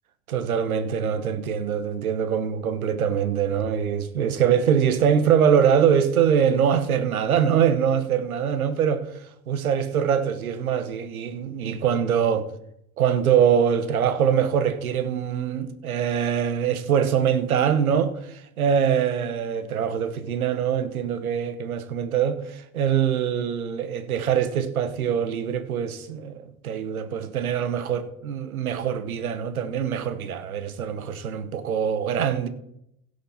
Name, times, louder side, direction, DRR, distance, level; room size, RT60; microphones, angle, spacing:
voice 1, 0.3-12.5 13.0-32.5, right 8 dB, 80° right, 1.2 m, -23 dB
16.5 x 6.5 x 4.2 m
hypercardioid pair, 75°, 42 cm